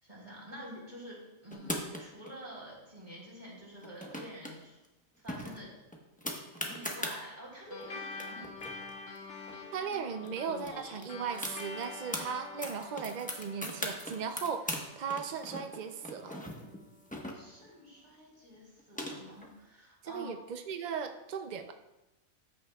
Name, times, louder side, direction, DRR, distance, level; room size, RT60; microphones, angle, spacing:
voice 1, 0.0-4.8 5.2-5.7 6.6-8.5 17.3-20.3, equal, 30° right, -5 dB, 3.7 m, -48 dB
sound 1, 1.5-2.3 3.8-4.5 4.8-4.9 5.3-7.2 7.8-7.9 8.1-10.0 10.3-10.4 10.6-12.2 12.6-14.8 15.1-17.7 18.5-19.5, equal, 5° left, 0.9 m, -39 dB
sound 2, 7.7-16.5, left 3 dB, 50° left, 1.2 m, -46 dB
voice 2, 9.7-16.4 20.0-21.7, right 6 dB, 70° right, 7 dB, 0.4 m, -37 dB
14.0 x 9.0 x 2.3 m, 1.0 s
omnidirectional pair, 1.4 m